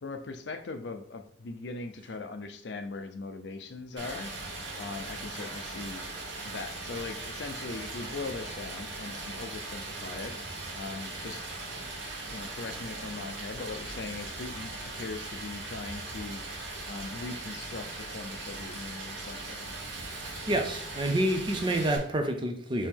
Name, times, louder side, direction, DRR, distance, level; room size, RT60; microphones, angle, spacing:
voice 1, 0.0-4.3 4.8-6.1 6.4-10.3 10.7-11.5 12.3-16.4 16.9-19.7, left 3 dB, 65° left, 8 dB, 0.5 m, -40 dB
Stream, 4.0-22.0, right 2 dB, 80° right, 1.1 m, -39 dB
voice 2, 20.2-22.9, right 1 dB, 25° right, 5 dB, 0.5 m, -28 dB
4.5 x 3.0 x 3.5 m, 0.65 s
head